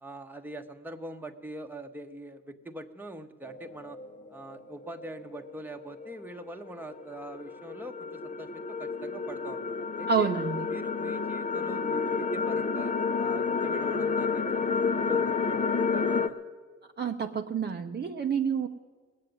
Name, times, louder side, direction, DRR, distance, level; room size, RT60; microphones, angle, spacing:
voice 1, 0.0-4.0 4.3-10.3 10.7-16.4, right 1 dB, 5° right, 5 dB, 1.1 m, -43 dB
sound 1, 3.4-16.3, left 5 dB, 25° left, 0.8 m, -31 dB
voice 2, 10.1-10.8 12.1-12.2 17.0-18.7, right 6 dB, 35° right, 4 dB, 0.8 m, -29 dB
18.5 x 7.6 x 9.4 m, 1.4 s
cardioid pair, 90°, 30 cm